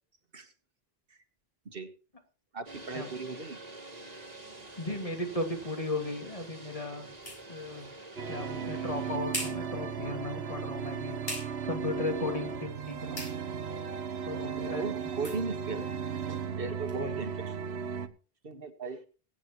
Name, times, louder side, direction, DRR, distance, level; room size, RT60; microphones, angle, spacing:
voice 1, 2.5-3.6 4.6-4.7 8.6-8.7 14.6-15.8 16.3-17.5 18.4-19.0, right 4 dB, 65° right, 8 dB, 1.6 m, -37 dB
sound 1, 2.7-9.2, right 2 dB, 40° right, 1.9 m, -47 dB
voice 2, 4.8-7.1 7.5-7.9 8.3-11.2 11.6-13.3 14.3-14.9 17.0-17.2, left 2 dB, 35° left, 3 dB, 2.4 m, -36 dB
sound 2, 5.5-17.0, left 1 dB, 70° left, 6.1 m, -46 dB
sound 3, 8.2-18.1, right 6 dB, 90° right, 1.2 m, -36 dB
21.5 x 9.2 x 3.0 m, 0.36 s
omnidirectional pair, 1.0 m